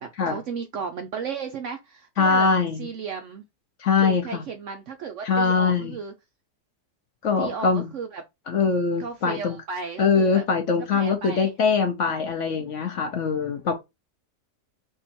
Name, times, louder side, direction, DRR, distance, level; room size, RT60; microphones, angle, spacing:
voice 1, 0.0-2.5 2.8-3.4 4.0-6.1 7.4-8.2 9.0-10.4 10.9-11.5, right 6 dB, 65° right, 0.7 m, -34 dB
voice 2, 2.2-2.9 3.8-4.4 5.2-5.9 7.2-7.9 8.5-9.6 10.0-13.7, left 5 dB, 60° left, 0.9 m, -22 dB
3.7 x 2.7 x 4.2 m
omnidirectional pair, 1.7 m